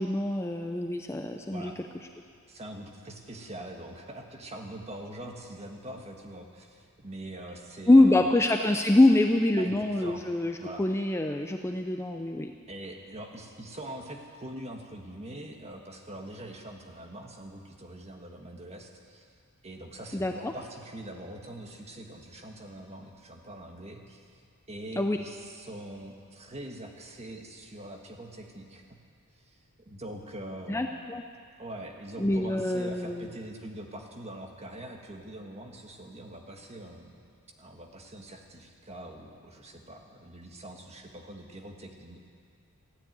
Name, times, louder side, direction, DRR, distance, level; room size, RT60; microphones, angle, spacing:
voice 1, 0.0-1.7 7.9-12.5 20.1-20.5 25.0-25.2 30.7-31.2 32.2-33.3, left 2 dB, 10° left, 4 dB, 0.5 m, -24 dB
voice 2, 1.5-1.8 2.5-8.3 9.6-10.2 10.6-10.8 12.7-19.3 19.6-24.4 24.7-29.0 29.3-30.9 31.6-37.2 37.6-42.2, right 1 dB, 30° right, 2 dB, 1.6 m, -43 dB
15.0 x 9.9 x 9.2 m, 2.2 s
head